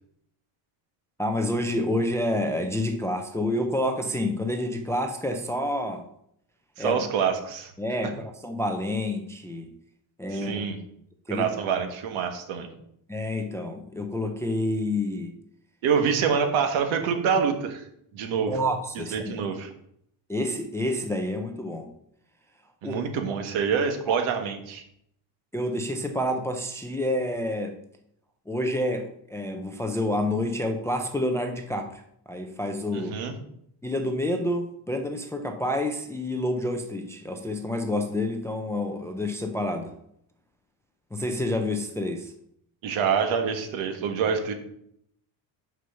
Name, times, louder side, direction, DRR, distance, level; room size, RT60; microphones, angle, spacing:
voice 1, 1.2-6.0 6.8-7.0 7.8-9.7 10.2-10.7 11.3-11.5 13.1-15.3 18.5-19.5 20.3-21.9 22.8-23.0 24.1-24.2 25.5-27.8 28.5-32.0 32.3-33.1 33.8-39.9 41.1-42.3, left 1 dB, 5° left, 4 dB, 0.3 m, -28 dB
voice 2, 6.8-7.7 10.3-10.8 11.3-12.7 15.8-17.8 18.1-18.6 18.9-19.7 22.8-24.8 32.9-33.3 42.8-44.5, right 6 dB, 75° right, 6 dB, 1.6 m, -26 dB
6.1 x 5.5 x 6.8 m, 0.72 s
cardioid pair, 170°, 47 cm